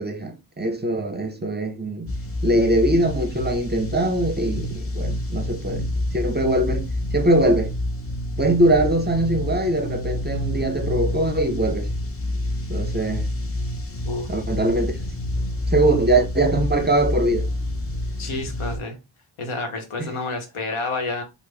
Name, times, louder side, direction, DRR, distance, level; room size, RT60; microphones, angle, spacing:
voice 1, 0.0-2.1 2.4-5.9 6.1-6.9 7.1-7.7 8.4-11.9 12.7-13.3 14.3-15.0 15.7-17.5 20.0-20.1, right 1 dB, 20° right, 0.5 m, -22 dB
sound 1, 2.1-18.8, left 1 dB, 30° left, 0.6 m, -28 dB
voice 2, 18.2-19.0 19.4-21.2, left 3 dB, 85° left, 0.9 m, -29 dB
3.3 x 2.0 x 3.2 m
cardioid pair, 50°, 49 cm